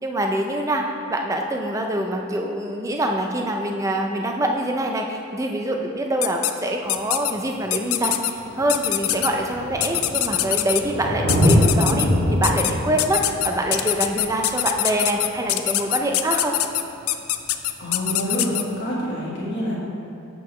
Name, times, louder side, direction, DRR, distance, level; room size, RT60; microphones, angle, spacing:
voice 1, 0.0-16.6, right 1 dB, 15° right, 2 dB, 0.4 m, -25 dB
sound 1, 6.2-6.5 6.9-7.3 7.7-8.3 8.7-9.3 9.8-10.8 11.3-12.1 12.4-12.7 13.0-18.6, left 14 dB, 85° left, 0.3 m, -23 dB
Thunder, 6.9-7.0 8.0-8.1 8.3-15.6 17.3-17.4, equal, 70° right, 1.3 m, -24 dB
voice 2, 17.8-19.7, equal, 55° left, -6 dB, 1.6 m, -27 dB
7.4 x 6.5 x 3.2 m, 2.7 s
head